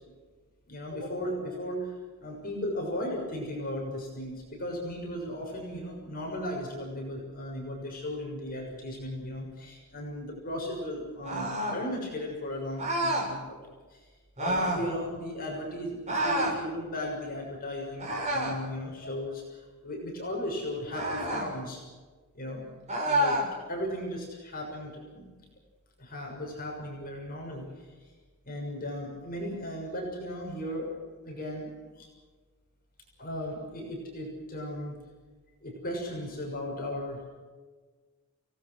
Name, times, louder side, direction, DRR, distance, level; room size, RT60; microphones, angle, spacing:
voice 1, 0.7-13.6 13.9-14.1 14.4-21.8 22.3-22.7 23.0-23.4 23.7-25.3 26.0-28.1 28.4-30.9 31.2-31.7 31.9-32.1 33.2-35.0 35.6-37.2, left 1 dB, 40° left, -1 dB, 6.6 m, -36 dB
sound 1, 11.2-11.8 12.8-13.3 14.4-14.9 16.1-16.6 18.0-18.6 20.9-21.5 22.9-23.5, right 1 dB, 30° right, 6.5 m, -28 dB
29.5 x 19.0 x 6.4 m, 1.4 s
head